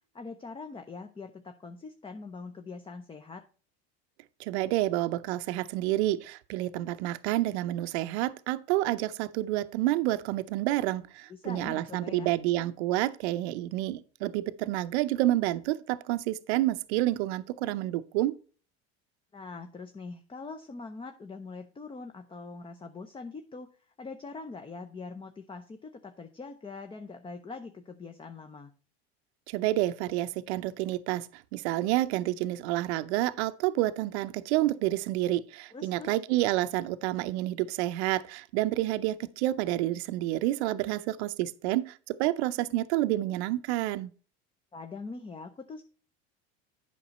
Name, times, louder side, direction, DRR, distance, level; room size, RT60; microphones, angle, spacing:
voice 1, 0.1-3.4 11.3-12.3 19.3-23.7 24.0-28.7 35.7-36.1 44.7-45.8, left 4 dB, 15° left, 0.6 m, -43 dB
voice 2, 4.4-18.4 29.5-31.3 31.5-44.1, right 15 dB, 75° right, 0.6 m, -29 dB
8.5 x 5.9 x 4.1 m
supercardioid pair, 100°, 33 cm